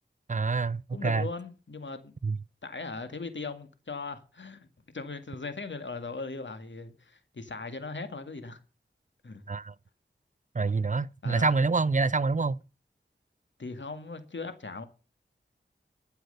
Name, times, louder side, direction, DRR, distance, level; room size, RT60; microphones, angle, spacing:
voice 1, 0.3-1.3 2.2-2.4 9.5-9.7 10.5-12.6, right 4 dB, 40° right, 0.5 m, -26 dB
voice 2, 0.9-2.1 2.6-4.7 4.9-8.6 9.2-9.4 11.2-11.6 13.6-14.8, left 3 dB, 70° left, 2.0 m, -39 dB
12.0 x 8.0 x 6.8 m
wide cardioid pair, 55°, 20 cm